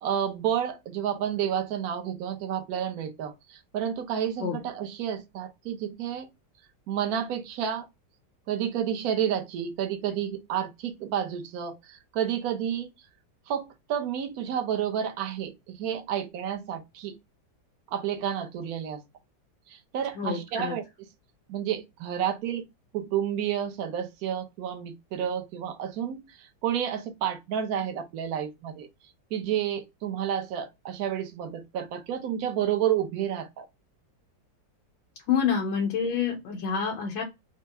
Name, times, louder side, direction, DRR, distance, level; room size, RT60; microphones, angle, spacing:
voice 1, 0.0-6.3 6.9-7.9 8.5-12.9 13.5-17.1 17.9-19.0 19.7-21.1 21.5-22.6 22.9-28.9 29.3-33.7, right 9 dB, 60° right, 1.1 m, -30 dB
voice 2, 20.1-20.8 35.3-37.2, left 7 dB, 85° left, 1.5 m, -27 dB
4.4 x 2.1 x 3.4 m
omnidirectional pair, 2.1 m